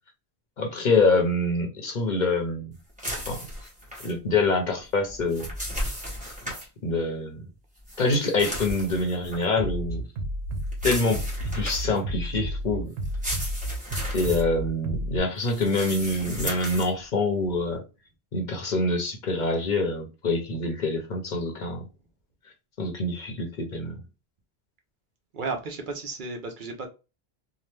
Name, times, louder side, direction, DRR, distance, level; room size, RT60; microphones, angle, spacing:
voice 1, 0.6-2.7 3.3-3.5 4.0-5.5 6.8-7.4 8.0-10.0 10.8-11.2 11.5-12.9 14.1-17.8 18.3-21.8 22.8-24.0, left 2 dB, 55° left, 0.7 m, -25 dB
sound 1, 3.0-4.1 5.1-6.7 7.9-9.4 10.7-12.0 13.0-14.4 15.4-16.9, equal, 10° right, 1.0 m, -35 dB
Bass drum, 9.6-15.2, equal, 90° right, 0.8 m, -31 dB
voice 2, 25.3-26.9, right 3 dB, 60° right, 0.7 m, -33 dB
2.9 x 2.0 x 3.2 m
omnidirectional pair, 1.0 m